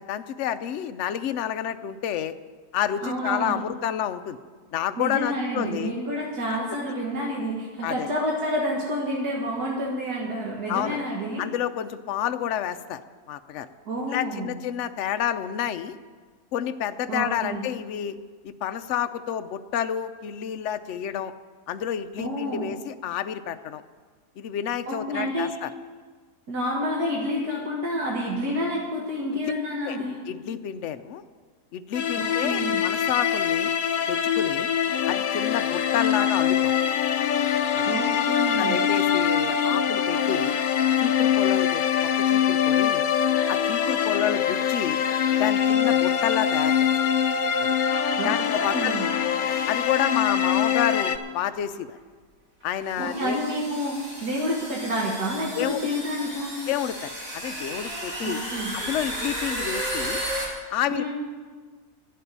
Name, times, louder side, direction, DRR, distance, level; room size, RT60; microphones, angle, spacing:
voice 1, 0.0-2.3 2.7-4.4 4.7-5.9 7.8-8.1 10.7-11.0 11.4-13.0 13.3-13.7 14.1-15.9 16.5-18.2 18.4-21.3 21.7-23.8 24.4-25.7 29.3-29.5 29.8-30.0 30.3-31.2 31.7-33.7 34.1-34.7 35.1-36.7 37.7-37.9 38.6-40.6 41.0-43.1 43.5-45.0 45.4-46.9 47.6-47.7 48.2-48.9 49.7-52.0 52.6-53.4 55.5-55.9 56.7-58.4 58.7-60.2 60.7-61.1, left 10 dB, 65° left, 10 dB, 0.8 m, -29 dB
voice 2, 3.0-3.6 5.0-11.5 13.9-14.6 17.1-17.6 22.2-22.7 24.9-25.5 26.5-30.2 32.2-32.8 37.9-38.8 48.2-48.4 48.6-49.1 53.0-56.6 58.2-58.7 60.9-61.1, equal, 70° right, -3 dB, 2.2 m, -29 dB
sound 1, 31.9-51.2, left 8 dB, 85° left, 0.4 m, -23 dB
sound 2, 49.5-49.8 50.8-50.9 52.0-52.1 52.9-60.5, right 1 dB, 55° right, 3.3 m, -34 dB
11.0 x 7.6 x 9.9 m, 1.5 s
omnidirectional pair, 1.7 m